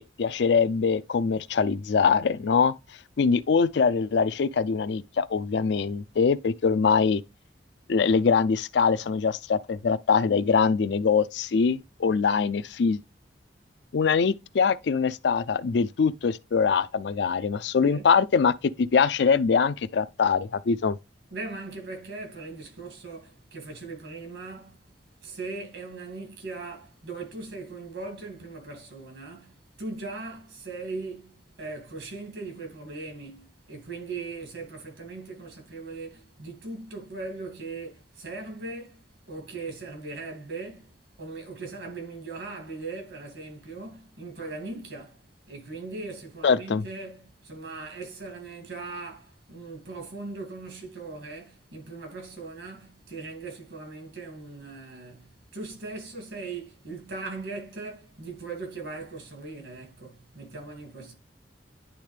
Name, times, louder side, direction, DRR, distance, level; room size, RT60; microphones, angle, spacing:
voice 1, 0.0-2.7 3.2-7.2 7.9-13.0 13.9-21.0 46.4-46.8, left 5 dB, 65° left, 0.4 m, -23 dB
voice 2, 21.3-24.8 25.2-40.9 41.2-61.1, right 3 dB, 75° right, 2.3 m, -39 dB
10.0 x 3.6 x 3.3 m
head